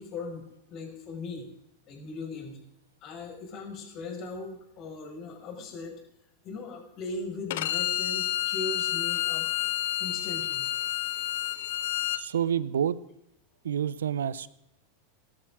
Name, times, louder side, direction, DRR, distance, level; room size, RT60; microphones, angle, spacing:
voice 1, 0.0-1.5 1.9-2.6 3.0-6.0 6.4-9.5 10.0-10.7, left 3 dB, 45° left, 1 dB, 5.6 m, -39 dB
Bowed string instrument, 7.5-12.2, left 14 dB, 70° left, 0.7 m, -29 dB
voice 2, 12.1-13.0 13.6-14.5, right 9 dB, 85° right, 18 dB, 0.7 m, -28 dB
18.0 x 13.0 x 3.7 m, 0.83 s
hypercardioid pair, 100°, 0 cm